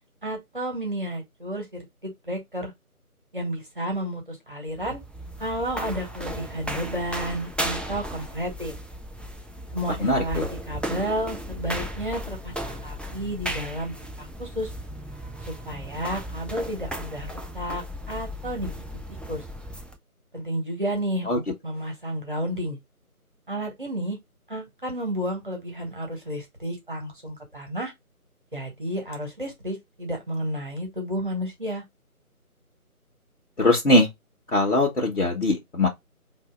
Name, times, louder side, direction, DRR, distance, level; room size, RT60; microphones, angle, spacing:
voice 1, 0.2-1.6 2.0-2.7 3.3-5.0 5.4-8.8 9.7-10.4 10.7-14.7 15.4-18.8 19.3-19.4 20.3-22.8 23.5-24.2 24.5-27.9 28.5-31.8, equal, 35° right, 1.3 m, -31 dB
sound 1, 4.7-20.0, equal, 5° left, 0.4 m, -35 dB
voice 2, 9.9-10.5 21.3-21.4 33.6-34.1 34.5-35.9, left 2 dB, 55° left, 1.3 m, -21 dB
4.1 x 2.8 x 3.7 m
figure-of-eight pair, 165°, 45 cm